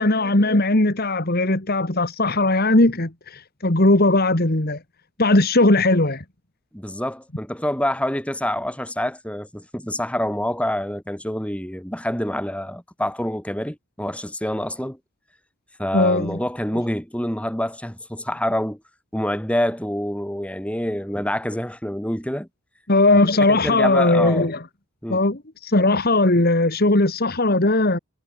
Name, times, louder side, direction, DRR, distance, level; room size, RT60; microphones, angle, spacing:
voice 1, 0.0-4.8 5.2-6.2 15.9-16.4 22.9-24.6 25.1-28.0, left 2 dB, 45° left, 2.2 m, -18 dB
voice 2, 6.7-15.0 15.8-18.8 19.1-22.5 23.1-24.5 25.0-25.2, left 1 dB, 5° left, 6.4 m, -27 dB
head